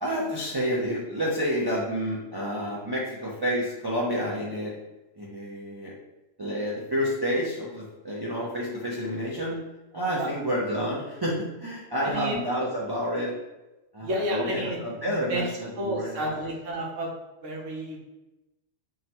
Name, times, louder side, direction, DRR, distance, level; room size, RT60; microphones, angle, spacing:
voice 1, 0.0-4.7 5.2-5.9 6.4-9.6 9.9-13.3 13.9-16.4, equal, 35° right, -6 dB, 0.4 m, -29 dB
voice 2, 12.0-12.4 14.0-15.4 15.8-17.1 17.4-18.0, right 1 dB, 70° right, -1 dB, 1.2 m, -31 dB
5.7 x 2.1 x 2.8 m, 1.0 s
omnidirectional pair, 1.3 m